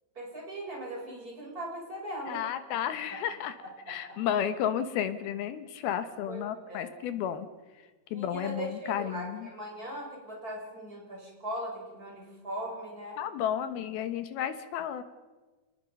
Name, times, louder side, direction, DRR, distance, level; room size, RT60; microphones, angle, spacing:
voice 1, 0.1-2.4 3.1-3.2 3.6-4.2 6.3-6.9 8.1-13.2, right 1 dB, 20° right, -1 dB, 6.2 m, -39 dB
voice 2, 2.3-3.6 3.9-7.5 8.1-9.5 13.2-15.0, left 9 dB, 80° left, 10 dB, 3.1 m, -32 dB
29.0 x 19.5 x 5.4 m, 1.3 s
omnidirectional pair, 4.4 m